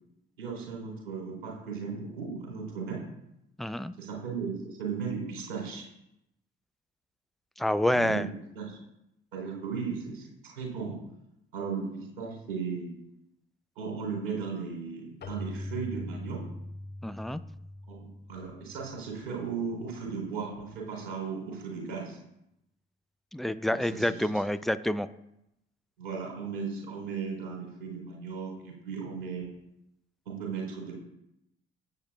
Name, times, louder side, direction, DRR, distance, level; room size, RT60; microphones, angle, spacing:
voice 1, 0.4-3.0 4.0-5.9 7.9-8.3 8.6-8.8 9.3-11.0 11.5-12.9 13.8-16.4 17.9-22.2 23.7-24.3 26.0-29.5 30.3-30.9, right 5 dB, 75° right, -1 dB, 3.5 m, -36 dB
voice 2, 3.6-3.9 7.6-8.3 17.0-17.4 23.3-25.1, left 1 dB, ahead, 12 dB, 0.4 m, -28 dB
Keyboard (musical), 15.2-19.7, left 1 dB, 35° left, 1.0 m, -42 dB
16.5 x 7.9 x 2.3 m, 0.83 s
figure-of-eight pair, 50°, 29 cm